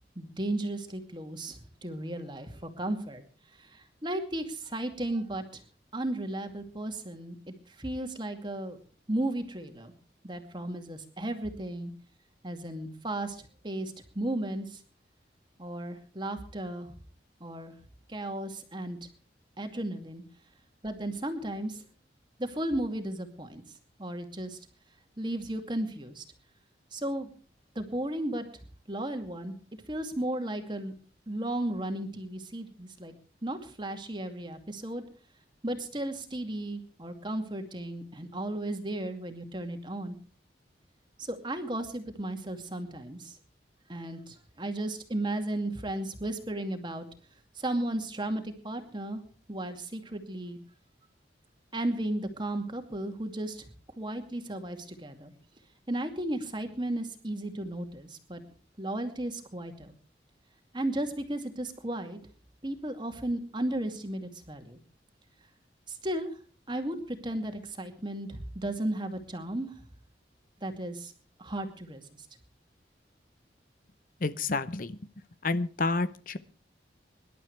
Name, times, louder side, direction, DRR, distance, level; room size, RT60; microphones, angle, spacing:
voice 1, 0.2-3.2 3.7-5.6 5.9-7.4 7.8-8.8 9.1-9.9 10.2-11.9 12.4-14.8 15.6-16.9 17.4-17.7 18.1-19.0 19.6-20.2 20.8-21.8 22.4-23.6 24.0-24.6 25.2-26.2 26.9-27.3 27.8-28.4 28.9-29.5 29.9-30.9 31.3-33.1 33.4-35.0 35.6-40.2 41.2-43.4 43.9-47.0 47.6-49.2 49.5-50.6 51.7-53.6 54.0-55.3 55.9-58.4 58.8-59.9 60.7-62.2 62.6-64.8 65.9-66.3 66.7-69.7 70.6-71.1 71.4-72.0, right 1 dB, 25° right, 6 dB, 2.5 m, -34 dB
voice 2, 74.2-75.0 75.4-76.4, left 3 dB, 50° left, 14 dB, 0.8 m, -29 dB
25.5 x 12.0 x 3.4 m, 0.40 s
head